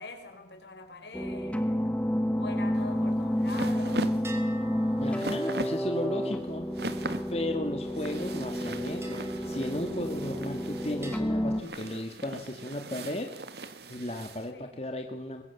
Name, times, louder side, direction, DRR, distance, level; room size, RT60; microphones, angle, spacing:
voice 1, 0.0-4.2 8.1-8.3 14.5-14.8, left 3 dB, 75° left, 5 dB, 4.8 m, -45 dB
sound 1, 1.1-11.6, equal, 5° left, 1.2 m, -30 dB
sound 2, 2.8-14.5, right 2 dB, 65° right, 1.9 m, -40 dB
sound 3, 4.2-7.9 9.0-10.6 11.0-12.7, right 2 dB, 15° right, 3.3 m, -51 dB
voice 2, 5.0-6.7 7.3-13.3 13.9-15.4, left 1 dB, 35° left, 4 dB, 1.9 m, -35 dB
25.0 x 22.0 x 7.2 m, 0.99 s
head